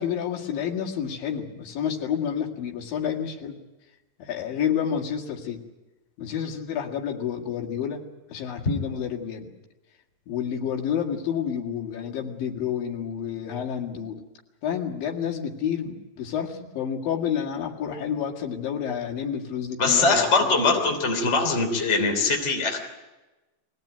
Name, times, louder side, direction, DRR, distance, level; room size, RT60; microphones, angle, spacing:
voice 1, 0.0-3.6 4.2-5.6 6.2-9.5 10.3-14.2 14.6-20.5 20.8-21.0, left 8 dB, 75° left, 0 dB, 3.9 m, -29 dB
voice 2, 19.8-22.8, left 3 dB, 20° left, 2 dB, 3.3 m, -22 dB
24.0 x 18.0 x 9.3 m, 1.1 s
omnidirectional pair, 4.1 m